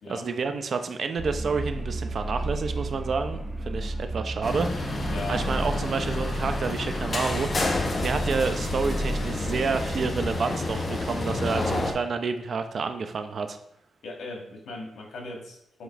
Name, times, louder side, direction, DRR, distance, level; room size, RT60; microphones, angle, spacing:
voice 1, 0.1-13.6, right 4 dB, 50° right, 8 dB, 0.6 m, -29 dB
sound 1, 1.2-10.3, right 1 dB, 15° right, 0.8 m, -33 dB
sound 2, 4.4-11.9, left 2 dB, 35° left, 0.9 m, -30 dB
voice 2, 5.0-5.5 14.0-15.8, left 2 dB, 75° left, 0 dB, 1.6 m, -38 dB
7.1 x 3.1 x 4.5 m, 0.78 s
cardioid pair, 100°, 0 cm